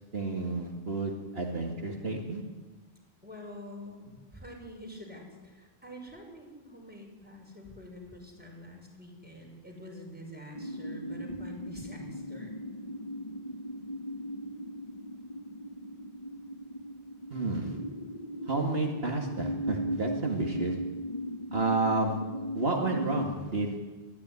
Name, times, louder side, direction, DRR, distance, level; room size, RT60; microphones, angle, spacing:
voice 1, 0.1-2.4 17.3-17.8 18.5-20.8 21.5-22.2 22.5-23.9, right 3 dB, 65° right, 1 dB, 2.5 m, -31 dB
voice 2, 3.2-12.5, equal, 10° right, 0 dB, 6.1 m, -46 dB
sound 1, 10.5-23.3, equal, 35° left, 1.2 m, -38 dB
22.5 x 14.5 x 9.9 m, 1.3 s
omnidirectional pair, 1.1 m